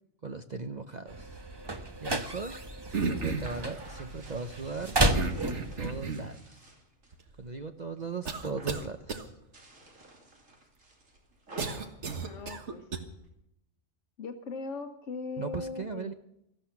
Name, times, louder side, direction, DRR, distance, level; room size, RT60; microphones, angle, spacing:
voice 1, 0.2-1.4 1.7-2.5 3.0-5.0 5.8-6.7 7.4-9.2 15.4-16.1, right 4 dB, 40° right, 8 dB, 0.7 m, -38 dB
sound 1, 1.1-6.0, right 1 dB, 20° right, 1.1 m, -32 dB
sound 2, 2.5-7.2 7.6-8.1 8.4-8.9 9.4-13.3, right 1 dB, 80° right, 3.2 m, -51 dB
sound 3, 2.9-3.6 5.1-6.4 7.1-7.2 8.2-8.8 9.1-9.2 11.6-13.0, right 4 dB, 65° right, 1.8 m, -33 dB
voice 2, 12.2-12.9 14.2-16.1, left 4 dB, 70° left, 5 dB, 1.4 m, -39 dB
17.5 x 13.5 x 5.9 m, 0.81 s
omnidirectional pair, 1.3 m